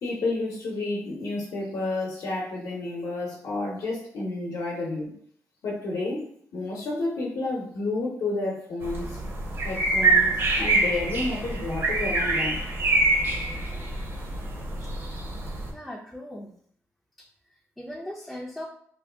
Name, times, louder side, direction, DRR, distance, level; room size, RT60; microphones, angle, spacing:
voice 1, 0.0-5.2 5.6-9.2 9.6-12.6, left 2 dB, 70° left, -3 dB, 0.7 m, -30 dB
sound 1, 8.8-15.7, right 2 dB, 45° right, 0.7 m, -25 dB
voice 2, 14.8-15.1 15.7-16.5 17.2-18.7, left 1 dB, 5° left, -2 dB, 0.4 m, -40 dB
2.6 x 2.2 x 3.3 m, 0.63 s
cardioid pair, 115°, 6 cm